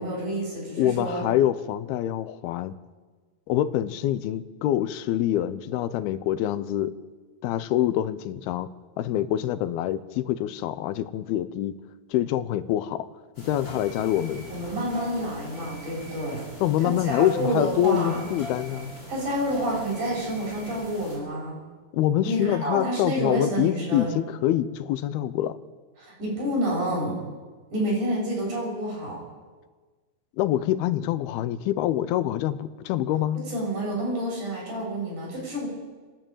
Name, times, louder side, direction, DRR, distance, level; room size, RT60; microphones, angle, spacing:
voice 1, 0.0-1.2 14.5-16.4 16.8-18.2 19.1-21.6 22.2-24.2 26.0-27.2 27.7-29.2 33.5-35.7, right 1 dB, 55° right, -3 dB, 8.7 m, -28 dB
voice 2, 0.8-2.7 3.5-6.9 7.4-8.7 9.0-11.8 12.1-13.1 13.4-14.5 16.6-18.9 21.9-25.6 30.4-33.4, left 12 dB, 85° left, 13 dB, 2.7 m, -25 dB
sound 1, 13.3-21.2, equal, 25° left, 7.7 m, -41 dB
28.0 x 11.5 x 9.0 m, 1.4 s
omnidirectional pair, 4.3 m